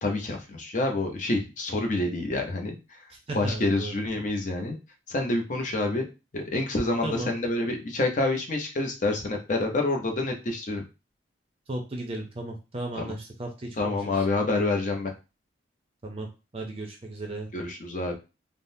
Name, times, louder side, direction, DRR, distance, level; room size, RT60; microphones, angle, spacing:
voice 1, 0.0-3.0 3.3-4.8 5.1-6.1 6.3-10.8 12.9-13.1 13.8-15.1 17.5-18.1, left 2 dB, 40° left, 2 dB, 0.6 m, -27 dB
voice 2, 3.3-4.0 7.0-7.3 11.7-14.2 16.0-16.3 16.5-17.5, right 2 dB, 30° right, 2 dB, 0.5 m, -35 dB
3.5 x 2.0 x 2.6 m, 0.28 s
head